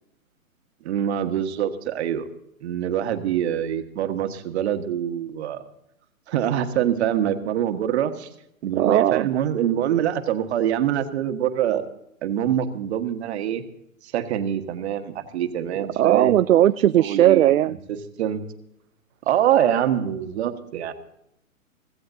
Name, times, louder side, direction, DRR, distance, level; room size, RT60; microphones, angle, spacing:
voice 1, 0.8-2.3 2.6-5.6 6.3-8.3 8.6-11.8 12.2-13.6 14.0-16.3 17.0-17.5 18.2-18.4 19.3-20.9, right 10 dB, 50° right, 8 dB, 1.6 m, -24 dB
voice 2, 8.8-9.3 16.0-17.8, right 12 dB, 70° right, 13 dB, 0.5 m, -18 dB
24.5 x 15.0 x 2.7 m, 0.78 s
figure-of-eight pair, 120°, 42 cm